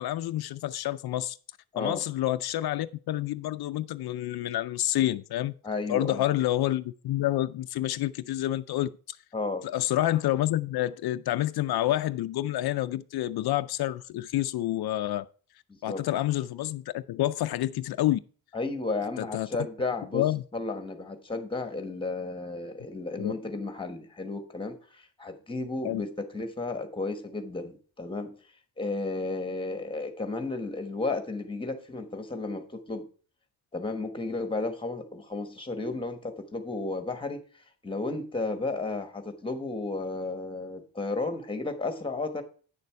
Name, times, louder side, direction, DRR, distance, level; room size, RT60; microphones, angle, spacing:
voice 1, 0.0-1.4 1.8-5.5 5.9-9.2 9.6-15.3 15.8-18.2 19.2-19.5 20.1-20.4 23.2-23.3 25.8-26.0, left 14 dB, 80° left, 0.5 m, -28 dB
voice 2, 5.6-6.3 9.3-9.6 15.7-16.0 18.5-20.2 20.5-28.3 28.8-33.1 33.7-42.4, left 3 dB, 15° left, 1.2 m, -33 dB
9.4 x 6.8 x 4.6 m
wide cardioid pair, 160°, 37 cm